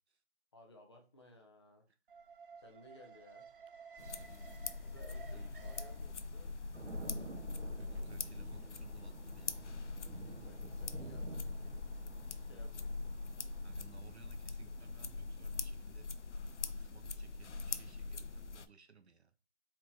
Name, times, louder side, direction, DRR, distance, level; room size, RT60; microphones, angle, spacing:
voice 1, 0.5-1.9 2.6-3.5 4.8-6.6 10.4-11.9 12.2-12.9, left 1 dB, 25° left, 1.0 m, -60 dB
Alarm, 2.1-18.2 18.5-18.6, right 6 dB, 50° right, 0.5 m, -60 dB
sound 1, 4.0-18.7, left 4 dB, 90° left, 0.7 m, -43 dB
sound 2, 6.7-14.2, right 3 dB, 90° right, 1.6 m, -51 dB
voice 2, 7.7-9.9 10.2-10.5 13.6-16.1 16.6-19.3, right 7 dB, 70° right, 1.1 m, -60 dB
4.7 x 4.5 x 4.4 m
hypercardioid pair, 165°, 34 cm